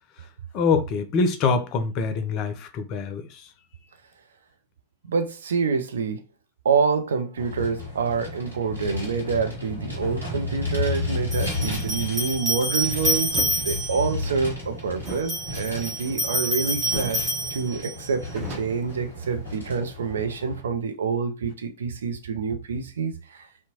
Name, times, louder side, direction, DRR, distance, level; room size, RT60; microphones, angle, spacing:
voice 1, 0.5-3.4, left 4 dB, 40° left, 0.5 m, -24 dB
voice 2, 5.1-6.2 6.6-17.2 17.5-23.5, right 5 dB, 65° right, 0.4 m, -27 dB
Vehicle, 7.4-20.6, left 3 dB, 85° right, 1.0 m, -33 dB
sound 1, 10.0-10.1 11.3-14.1 15.1-18.1, equal, 5° right, 1.4 m, -28 dB
sound 2, 13.3-13.6 15.0-16.5 16.9-17.3 17.6-17.7 18.0-19.5, right 2 dB, 40° right, 0.9 m, -37 dB
2.7 x 2.2 x 2.8 m
figure-of-eight pair, 90°, 0 cm